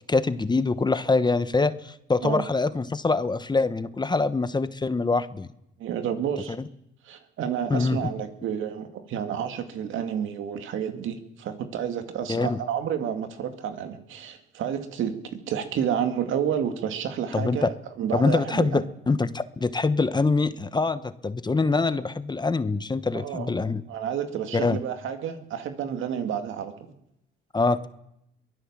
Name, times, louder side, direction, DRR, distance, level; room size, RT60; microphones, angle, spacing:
voice 1, 0.1-5.5 7.7-8.1 12.3-12.6 17.3-17.7 18.1-23.8 24.5-24.8 27.5-27.9, left 3 dB, 20° left, 13 dB, 1.0 m, -24 dB
voice 2, 5.8-6.6 7.0-18.8 23.1-23.5 23.9-26.7, right 8 dB, 80° right, 7 dB, 2.1 m, -30 dB
23.5 x 16.0 x 7.4 m, 0.82 s
cardioid pair, 90°, 20 cm